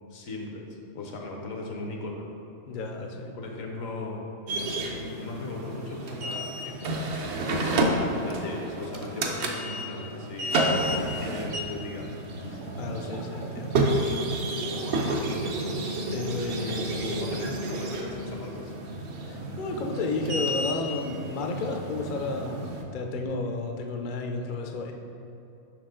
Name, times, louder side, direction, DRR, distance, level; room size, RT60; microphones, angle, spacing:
voice 1, 0.1-0.7 0.9-2.3 3.0-3.1 3.3-4.2 4.8-7.0 7.8-10.7 11.3-12.1 16.9-18.7, left 2 dB, 85° left, 0 dB, 1.3 m, -37 dB
voice 2, 2.7-3.3 7.9-8.2 12.5-14.2 16.1-17.1 19.3-22.6 22.9-24.9, left 3 dB, 55° left, 2 dB, 0.5 m, -32 dB
sound 1, 4.5-22.8, right 1 dB, 65° right, 0.8 m, -30 dB
sound 2, 10.7-23.3, right 2 dB, 80° right, 1.1 m, -41 dB
6.0 x 4.7 x 3.7 m, 2.8 s
omnidirectional pair, 1.4 m